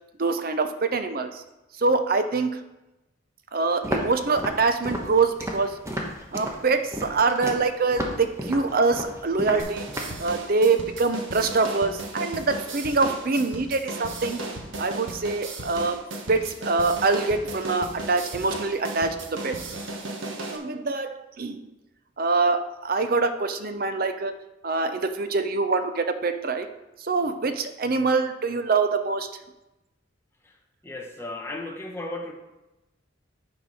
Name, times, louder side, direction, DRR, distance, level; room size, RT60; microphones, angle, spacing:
voice 1, 0.2-1.4 1.8-2.6 3.5-5.8 6.3-9.8 10.2-14.4 14.8-16.0 16.3-19.6 20.5-21.7 22.2-24.3 24.6-26.7 27.0-29.3, right 3 dB, 50° right, 9 dB, 0.7 m, -24 dB
Walk footsteps, 3.8-10.2, equal, 15° right, 1.1 m, -33 dB
sound 1, 9.6-20.6, right 2 dB, 85° right, 1.3 m, -36 dB
voice 2, 30.8-32.3, left 2 dB, 15° left, 1 dB, 1.0 m, -35 dB
10.0 x 4.6 x 5.5 m, 1.0 s
head